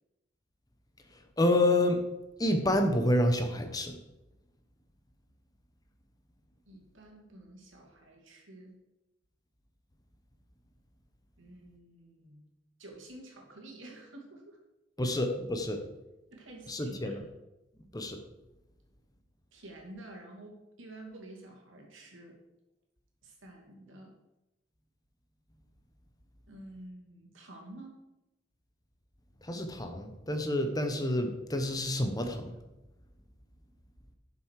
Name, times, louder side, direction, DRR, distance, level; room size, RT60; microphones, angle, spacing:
voice 1, 1.4-2.0 2.4-4.0 15.0-15.8 16.7-17.2 17.9-18.2 29.4-32.5, left 1 dB, 20° left, 6 dB, 1.0 m, -28 dB
voice 2, 6.6-8.7 11.4-12.4 12.8-14.6 15.0-15.1 16.3-17.2 19.5-22.4 23.2-24.1 26.5-28.0, right 1 dB, 85° right, 1 dB, 2.6 m, -50 dB
11.5 x 7.0 x 4.8 m, 0.97 s
head